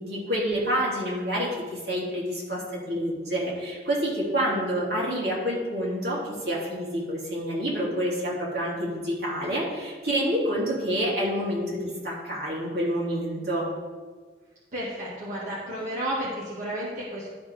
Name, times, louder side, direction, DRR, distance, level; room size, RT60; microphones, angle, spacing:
voice 1, 0.0-13.6, equal, 65° right, -6 dB, 3.0 m, -28 dB
voice 2, 14.7-17.3, right 1 dB, 45° right, -9 dB, 2.0 m, -32 dB
12.5 x 6.0 x 3.5 m, 1.4 s
head